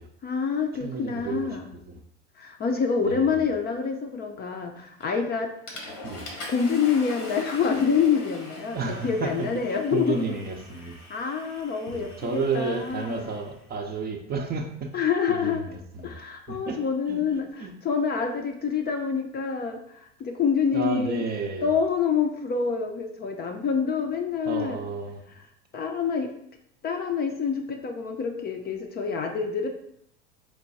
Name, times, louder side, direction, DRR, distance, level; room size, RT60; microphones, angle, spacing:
voice 1, 0.2-1.7 2.4-5.5 6.5-10.4 11.1-13.2 14.9-15.6 16.0-21.2 21.6-24.8 25.7-26.3 26.8-29.7, left 6 dB, 25° left, 0.5 m, -27 dB
voice 2, 0.8-1.6 3.0-3.4 6.0-6.2 8.7-9.5 9.9-10.9 11.9-14.9 15.3-16.1 16.7-16.8 17.1-17.2 17.6-17.7 20.7-21.7 24.5-25.2, right 4 dB, 25° right, 0.6 m, -31 dB
Water / Toilet flush, 5.0-5.3 5.7-13.5, left 1 dB, 85° left, 1.3 m, -42 dB
4.6 x 2.2 x 4.0 m
hypercardioid pair, 90°, 36 cm